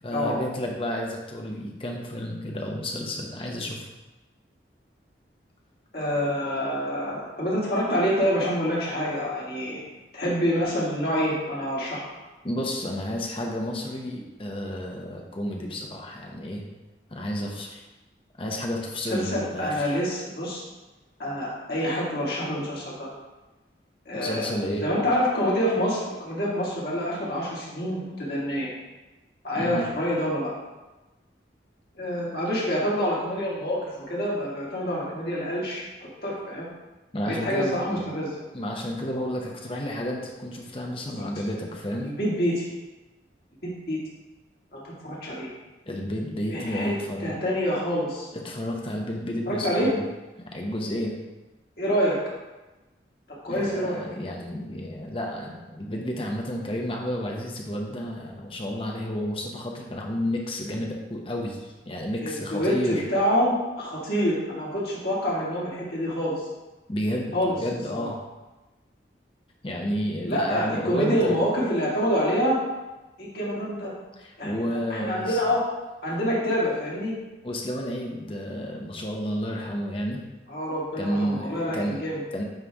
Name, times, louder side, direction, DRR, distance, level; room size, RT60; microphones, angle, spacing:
voice 1, 0.0-3.9 12.4-16.6 17.1-17.8 18.4-20.0 24.2-24.9 29.6-29.9 37.1-38.0 38.5-42.1 45.9-47.3 48.3-50.0 50.5-51.1 53.5-61.6 61.9-63.0 66.9-68.2 69.6-71.4 74.2-75.4 77.4-80.2 81.0-82.0 82.3-82.4, equal, 30° left, 0 dB, 0.8 m, -31 dB
voice 2, 5.9-9.8 10.1-12.0 19.1-20.6 21.2-23.1 24.1-24.5 24.8-28.7 29.4-30.5 31.9-36.7 37.2-38.4 41.0-41.2 42.0-42.7 43.6-44.0 44.7-45.5 46.5-46.9 47.2-48.3 49.5-49.9 51.8-52.2 53.4-54.0 62.2-66.4 67.3-67.6 68.0-68.1 70.3-72.6 73.2-73.9 74.4-74.5 74.9-75.6 76.0-77.1 80.5-82.2, equal, 55° left, -6 dB, 2.1 m, -27 dB
9.1 x 3.2 x 3.5 m, 1.1 s
head